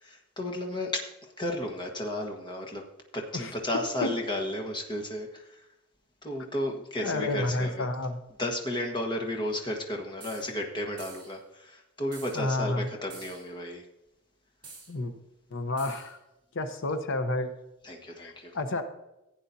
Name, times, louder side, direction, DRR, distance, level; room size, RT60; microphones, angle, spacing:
voice 1, 0.0-2.8 3.1-5.7 6.2-7.9 8.4-13.8 17.8-18.6, left 1 dB, 20° left, 1 dB, 1.4 m, -33 dB
voice 2, 7.0-8.2 12.3-12.9 14.9-15.1 15.5-16.2 16.5-17.5 18.2-18.8, left 2 dB, 60° left, 8 dB, 0.9 m, -30 dB
sound 1, 10.2-10.5 11.0-11.4 12.1-12.4 13.1-13.5 14.6-14.9 15.8-16.1, right 4 dB, 25° right, 3.3 m, -47 dB
15.5 x 8.9 x 2.7 m, 0.95 s
head